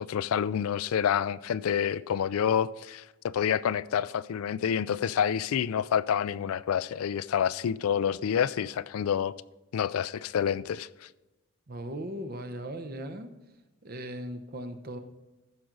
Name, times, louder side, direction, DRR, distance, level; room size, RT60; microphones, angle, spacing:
voice 1, 0.0-9.3 9.7-11.1, left 8 dB, 75° left, 0.3 m, -28 dB
voice 2, 11.7-13.3 13.8-15.0, right 1 dB, 45° right, 0.8 m, -38 dB
15.0 x 6.1 x 3.9 m
head